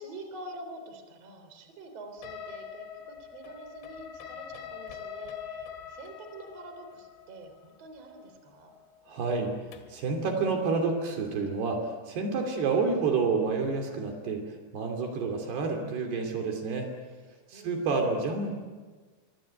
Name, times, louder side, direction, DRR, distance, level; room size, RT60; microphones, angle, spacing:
voice 1, 0.0-8.7 17.5-17.9, right 2 dB, 40° right, 6 dB, 4.3 m, -46 dB
sound 1, 2.2-10.1, left 7 dB, 90° left, 4.3 m, -44 dB
voice 2, 9.1-9.5 9.9-14.4 14.7-16.9 17.5-18.5, right 4 dB, 70° right, 3 dB, 4.8 m, -29 dB
25.0 x 25.0 x 9.2 m, 1.4 s
omnidirectional pair, 5.0 m